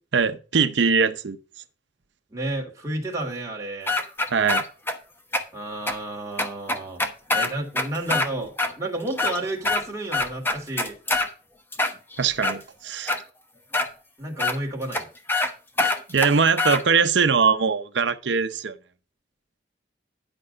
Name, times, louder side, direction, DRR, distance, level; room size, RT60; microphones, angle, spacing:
voice 1, 0.1-1.4 4.3-4.6 12.2-13.2 16.1-18.8, right 5 dB, 70° right, 0.7 m, -21 dB
voice 2, 2.3-4.0 5.5-7.0 7.3-11.0 14.2-15.1, right 1 dB, 15° right, 2.1 m, -31 dB
sound 1, 3.9-5.0 5.3-5.4 5.9-6.0 6.4-8.3 8.6-8.7 9.1-9.8 10.1-11.3 11.7-12.6 13.1-13.2 13.7-13.9 14.4-14.6 14.9-15.0 15.3-15.5 15.8-16.8, left 2 dB, 10° left, 0.9 m, -24 dB
11.0 x 5.3 x 5.2 m
head